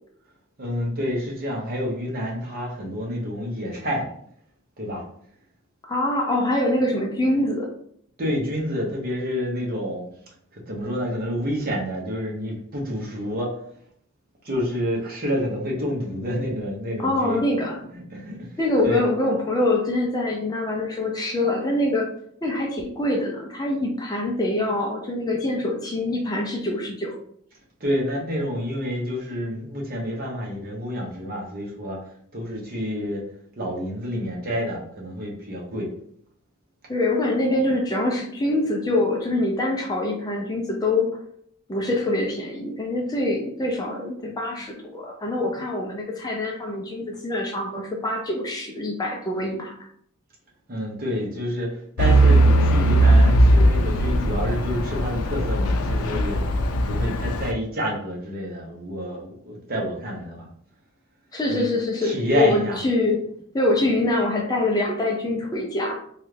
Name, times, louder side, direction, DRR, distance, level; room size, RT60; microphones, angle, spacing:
voice 1, 0.6-4.1 4.8-5.0 8.2-10.1 10.5-13.6 14.4-17.4 17.9-19.0 27.8-33.3 33.6-35.9 39.3-39.7 44.5-44.8 45.4-46.1 50.7-56.4 56.8-60.5 61.5-61.7 62.0-62.8, equal, 45° right, -2 dB, 0.9 m, -29 dB
voice 2, 5.9-7.7 17.0-17.8 18.6-22.1 22.4-27.1 36.9-41.2 41.7-49.7 61.3-63.2 63.5-66.0, left 2 dB, 20° left, 0 dB, 0.5 m, -24 dB
Truck / Idling, 52.0-57.5, right 1 dB, 85° left, 0.4 m, -19 dB
3.1 x 2.4 x 3.2 m, 0.65 s
head